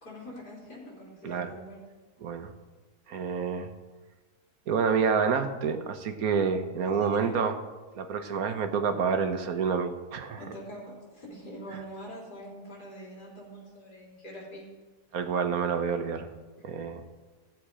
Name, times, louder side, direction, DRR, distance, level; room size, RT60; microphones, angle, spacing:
voice 1, 0.0-1.8 6.8-7.4 10.4-14.7, equal, 85° left, -4 dB, 4.0 m, -44 dB
voice 2, 2.2-2.5 3.1-3.7 4.7-7.6 8.0-10.4 15.1-16.3 16.6-17.0, right 6 dB, 70° right, 8 dB, 1.4 m, -28 dB
16.0 x 7.5 x 4.9 m, 1.3 s
omnidirectional pair, 1.7 m